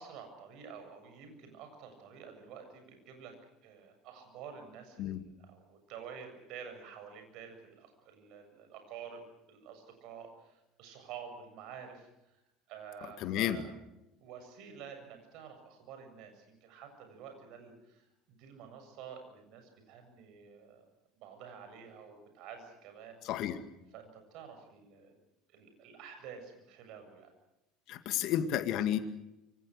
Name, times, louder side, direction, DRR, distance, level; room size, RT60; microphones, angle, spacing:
voice 1, 0.0-3.4 3.6-12.1 12.7-13.7 14.2-20.8 21.2-23.5 23.9-25.1 25.5-27.3 28.1-28.3, right 7 dB, 55° right, 6 dB, 7.4 m, -49 dB
voice 2, 13.2-13.6 23.2-23.6 27.9-29.0, left 11 dB, 55° left, 10 dB, 2.1 m, -31 dB
26.5 x 25.0 x 6.5 m, 0.91 s
figure-of-eight pair, 70°, 0 cm